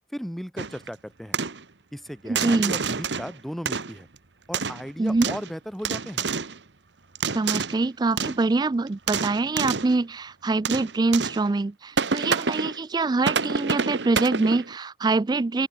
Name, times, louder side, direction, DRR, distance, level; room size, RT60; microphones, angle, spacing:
voice 1, 0.1-1.4 1.9-4.1 4.5-6.3, equal, ahead, 2.0 m, -36 dB
sound 1, 0.6-0.9 1.3-1.6 2.3-3.3 3.7-4.2 4.5-5.5 5.8-6.6 7.1-7.9 8.2-8.5 8.9-10.0 10.6-11.5 12.0-12.8 13.2-14.7, right 5 dB, 85° right, 1.4 m, -28 dB
voice 2, 2.2-2.8 5.0-5.3 7.3-15.7, right 3 dB, 25° right, 0.3 m, -24 dB
open air
head